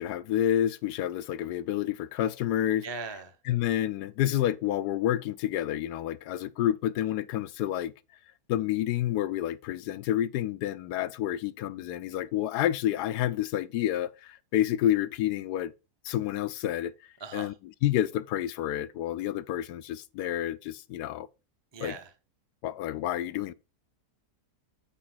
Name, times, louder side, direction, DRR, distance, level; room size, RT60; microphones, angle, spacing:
voice 1, 0.0-2.8 3.5-7.9 8.5-15.7 16.0-16.9 17.3-17.5 17.8-21.3 21.8-21.9 22.6-23.5, left 12 dB, 85° left, 1.2 m, -29 dB
voice 2, 2.8-3.4 17.2-17.6 21.7-22.1, right 4 dB, 20° right, 0.8 m, -39 dB
8.8 x 4.5 x 4.4 m
omnidirectional pair, 1.7 m